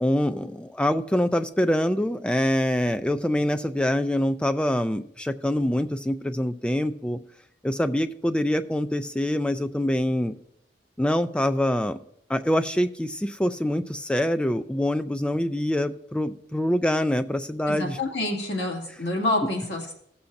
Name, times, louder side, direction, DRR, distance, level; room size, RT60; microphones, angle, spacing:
voice 1, 0.0-7.2 7.6-10.3 11.0-12.0 12.3-18.0, left 1 dB, 5° left, 9 dB, 0.3 m, -25 dB
voice 2, 17.7-19.9, left 2 dB, 70° left, -1 dB, 2.2 m, -27 dB
16.5 x 7.0 x 2.6 m, 0.72 s
head